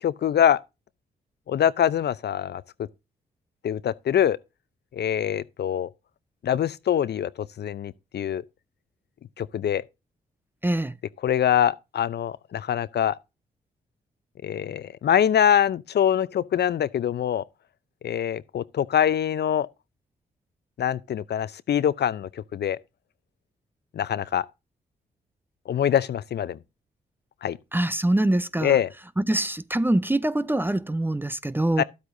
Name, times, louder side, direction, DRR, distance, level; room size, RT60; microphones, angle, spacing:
voice 1, 0.0-0.6 1.5-2.6 3.6-4.4 4.9-5.9 6.4-7.3 7.6-8.4 9.4-9.8 11.2-13.1 14.4-17.4 18.0-19.7 20.8-22.8 23.9-24.4 25.7-26.6 27.4-27.6 28.6-28.9 31.8-31.9, left 9 dB, 55° left, 0.6 m, -24 dB
voice 2, 10.6-10.9 27.7-28.8 29.2-31.8, right 1 dB, 10° right, 0.6 m, -24 dB
12.0 x 8.2 x 2.7 m
hypercardioid pair, 40°, 21 cm